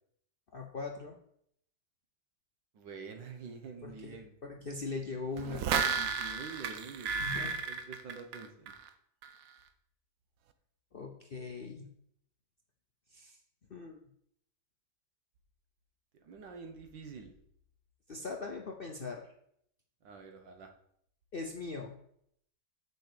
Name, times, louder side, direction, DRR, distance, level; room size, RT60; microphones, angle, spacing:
voice 1, 0.5-1.2 3.8-5.7 7.2-7.6 10.9-11.9 13.1-13.4 13.7-14.0 18.1-19.3 21.3-22.0, left 4 dB, 50° left, 2 dB, 0.6 m, -40 dB
voice 2, 2.7-4.3 5.9-8.7 16.2-17.3 20.0-20.7, right 5 dB, 80° right, 4 dB, 1.8 m, -47 dB
sound 1, 5.4-8.9 9.2-9.3, right 6 dB, 65° right, 0.9 m, -33 dB
6.6 x 5.3 x 6.7 m, 0.70 s
omnidirectional pair, 1.9 m